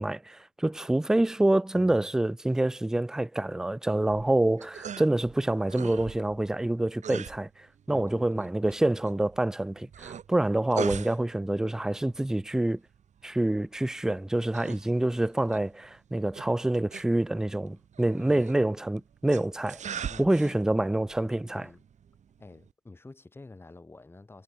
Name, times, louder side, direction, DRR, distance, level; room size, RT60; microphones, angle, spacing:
voice 1, 0.0-7.5 7.9-12.8 13.2-19.8 20.2-21.7, right 1 dB, 5° right, 0.3 m, -27 dB
voice 2, 1.7-2.1 7.9-8.5 8.9-9.0 18.2-18.4 20.1-20.7 21.5-21.8 22.4-24.4, left 2 dB, 15° left, 2.7 m, -48 dB
sound 1, 4.0-22.7, right 8 dB, 45° right, 2.6 m, -43 dB
cardioid pair, 110°, 17 cm